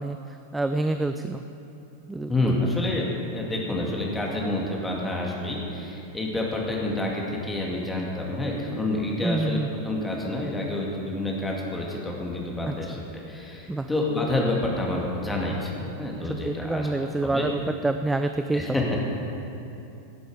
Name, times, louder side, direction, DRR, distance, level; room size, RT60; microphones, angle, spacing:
voice 1, 0.0-1.4 2.1-2.6 9.2-9.7 12.6-12.7 13.7-13.9 16.2-18.7, right 2 dB, 10° right, 8 dB, 0.4 m, -27 dB
voice 2, 2.3-16.9 17.2-17.5 18.5-19.0, left 2 dB, 10° left, -2 dB, 2.3 m, -28 dB
18.5 x 8.1 x 5.0 m, 2.9 s
figure-of-eight pair, 90°, 0 cm